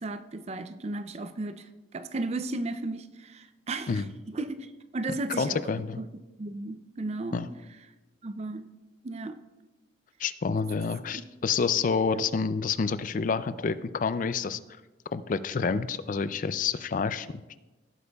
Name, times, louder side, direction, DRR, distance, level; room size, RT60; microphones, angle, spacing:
voice 1, 0.0-5.6 6.0-6.1 6.4-7.4 8.2-8.7 9.0-9.4 11.1-11.2 12.1-12.2, right 2 dB, 35° right, 11 dB, 0.4 m, -35 dB
voice 2, 5.4-6.0 7.3-7.5 10.2-14.6 15.1-17.3, left 5 dB, 45° left, 14 dB, 0.4 m, -28 dB
16.5 x 8.1 x 2.3 m, 1.1 s
head